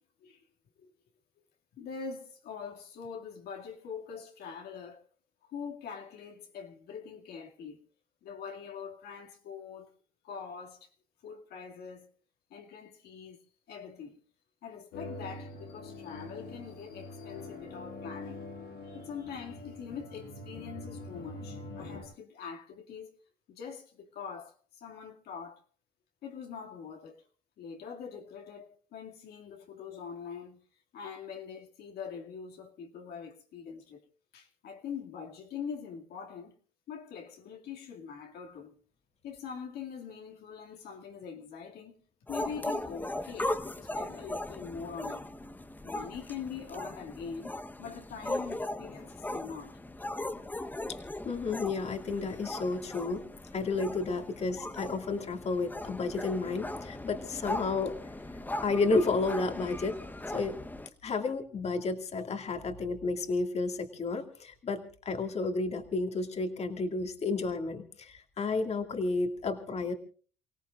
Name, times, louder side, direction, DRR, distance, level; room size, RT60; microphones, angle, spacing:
voice 1, 1.7-5.1 5.4-7.8 8.2-9.9 10.2-10.9 11.2-12.1 12.5-13.4 13.7-14.2 14.6-18.5 18.8-23.1 23.5-25.6 26.2-27.2 27.6-30.6 30.9-34.0 34.3-36.5 36.9-38.8 39.2-42.0 42.3-45.3 45.8-47.5 47.8-49.8, left 6 dB, 70° left, 2.3 m, -43 dB
sound 1, 14.9-22.0, left 2 dB, 85° left, 7.7 m, -44 dB
sound 2, 42.3-60.9, left 1 dB, 10° left, 1.0 m, -38 dB
voice 2, 51.2-53.2 53.5-58.0 58.6-60.0 60.3-60.6 61.0-69.9, left 3 dB, 40° left, 2.2 m, -31 dB
29.5 x 17.5 x 2.5 m
cardioid pair, 110°, 17 cm